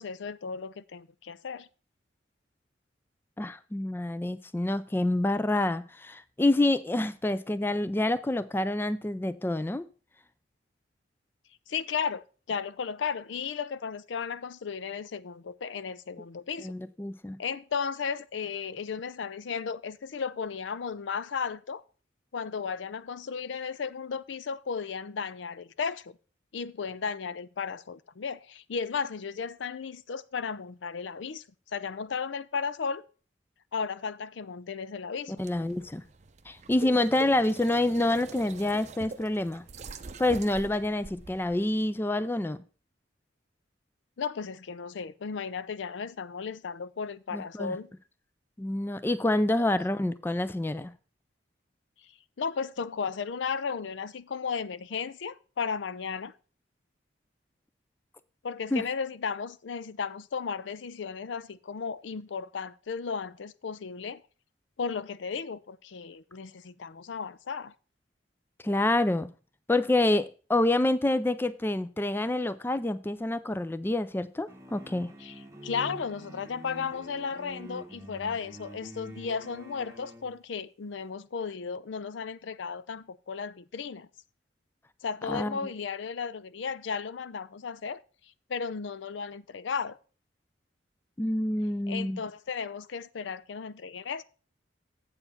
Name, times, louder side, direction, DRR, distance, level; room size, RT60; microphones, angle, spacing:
voice 1, 0.0-1.7 11.7-16.7 17.4-21.8 22.3-26.2 26.5-31.4 31.7-33.0 33.7-35.4 44.2-47.9 49.6-49.7 52.0-52.1 52.4-56.3 58.4-64.2 64.8-67.7 75.2-84.1 85.0-88.0 88.5-90.0 91.9-94.2, left 6 dB, 75° left, 0.5 m, -35 dB
voice 2, 3.4-9.9 16.6-17.4 35.4-36.0 36.5-39.6 40.2-42.6 47.3-47.8 48.6-50.9 58.7-58.8 68.6-69.3 69.7-75.1 85.3-85.6 91.2-92.2, left 1 dB, 10° left, 0.3 m, -27 dB
sound 1, 35.4-41.5, right 2 dB, 40° right, 0.6 m, -44 dB
sound 2, 74.5-80.3, right 1 dB, 15° right, 1.1 m, -46 dB
7.9 x 4.6 x 7.1 m
head